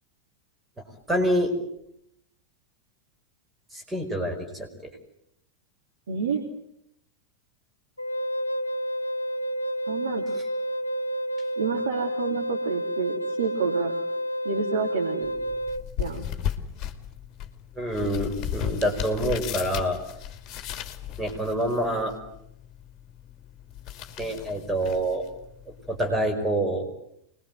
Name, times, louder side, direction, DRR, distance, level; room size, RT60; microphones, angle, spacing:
voice 1, 1.1-1.5 3.7-4.7 17.8-20.0 21.2-22.1 24.2-25.3 25.7-26.9, right 1 dB, 10° right, 4 dB, 5.3 m, -26 dB
voice 2, 6.1-6.4 9.9-10.3 11.6-13.9 14.4-15.3 16.0-16.3, right 5 dB, 65° right, 2 dB, 3.0 m, -29 dB
Wind instrument woodwind instrument, 8.0-15.8, equal, 80° left, 1.1 m, -30 dB
sound 1, 15.2-26.2, left 10 dB, 35° left, 2.4 m, -36 dB
25.5 x 21.5 x 9.3 m, 0.77 s
figure-of-eight pair, 90°, 0 cm